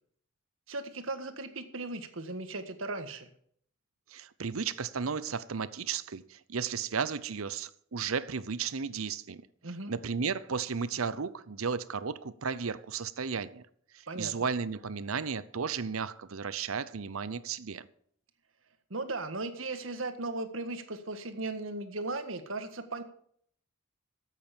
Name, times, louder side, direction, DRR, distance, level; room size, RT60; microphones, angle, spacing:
voice 1, 0.7-3.3 9.6-9.9 14.1-14.3 18.9-23.0, right 2 dB, 70° right, 1.7 m, -37 dB
voice 2, 4.1-9.4 9.9-13.6 13.9-17.9, right 6 dB, 90° right, 0.8 m, -34 dB
13.5 x 8.4 x 7.0 m
head